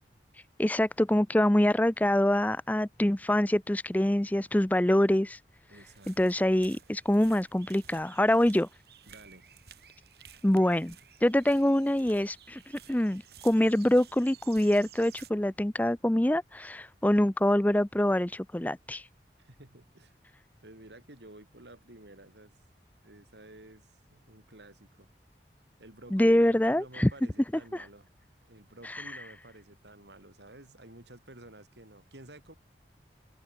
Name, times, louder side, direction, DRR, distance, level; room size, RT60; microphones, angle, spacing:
voice 1, 0.6-5.4 6.1-8.7 10.4-11.0 11.2-12.6 12.9-19.1 26.1-27.1 27.7-27.8 28.8-29.0, left 1 dB, 10° left, 0.5 m, -25 dB
voice 2, 5.7-6.1 9.1-9.5 19.4-20.2 20.6-22.5 23.0-25.1 25.8-28.1 28.4-32.5, right 1 dB, 80° right, 4.7 m, -51 dB
sound 1, 5.8-15.3, right 9 dB, 65° right, 3.1 m, -54 dB
open air
head